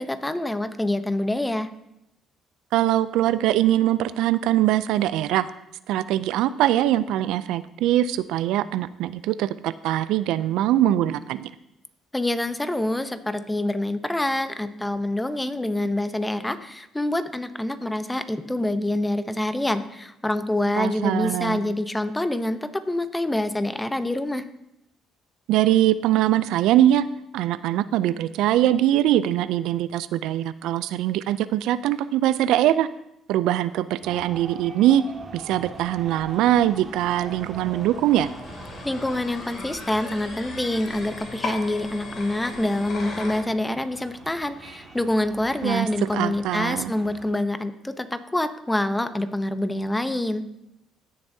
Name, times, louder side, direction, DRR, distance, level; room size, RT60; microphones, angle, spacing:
voice 1, 0.0-1.7 12.1-24.4 38.8-50.5, left 1 dB, 10° left, 11 dB, 0.7 m, -26 dB
voice 2, 2.7-5.5 5.9-11.5 20.8-21.7 25.5-27.1 27.3-32.9 33.3-35.0 35.3-38.3 45.6-46.9, right 13 dB, 80° right, 15 dB, 0.3 m, -22 dB
sound 1, 34.0-47.3, right 3 dB, 40° right, 1.8 m, -43 dB
sound 2, 35.7-43.4, left 3 dB, 60° left, 2.6 m, -39 dB
16.0 x 7.0 x 2.7 m, 0.85 s
cardioid pair, 85°, 0 cm